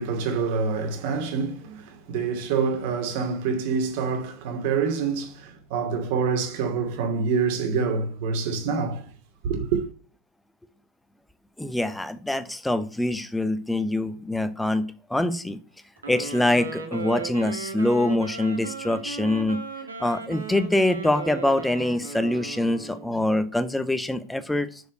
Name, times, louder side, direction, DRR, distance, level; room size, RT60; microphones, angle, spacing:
voice 1, 0.0-9.1 9.4-9.8, right 5 dB, 50° right, 2.6 m, -26 dB
voice 2, 11.6-15.6 16.1-19.6 20.0-24.8, left 1 dB, 5° left, 0.9 m, -24 dB
Wind instrument woodwind instrument, 16.0-23.2, right 4 dB, 75° right, 2.4 m, -36 dB
6.9 x 6.7 x 7.8 m
figure-of-eight pair, 90°, 0 cm